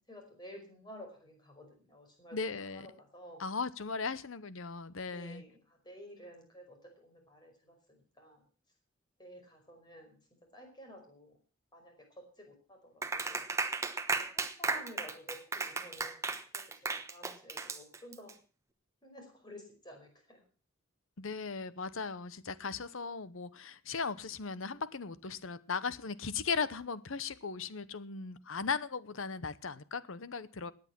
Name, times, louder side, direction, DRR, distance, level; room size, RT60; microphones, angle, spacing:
voice 1, 0.1-3.5 5.0-8.4 9.2-10.2 10.5-11.3 11.7-13.4 14.6-18.3 19.0-20.4 21.2-21.4, equal, 20° left, 5.2 m, -52 dB
voice 2, 2.3-2.9 3.4-5.4 21.2-30.7, left 5 dB, 70° left, 0.9 m, -37 dB
Clapping, 13.0-18.3, right 3 dB, 15° right, 1.0 m, -35 dB
17.0 x 9.7 x 6.1 m
head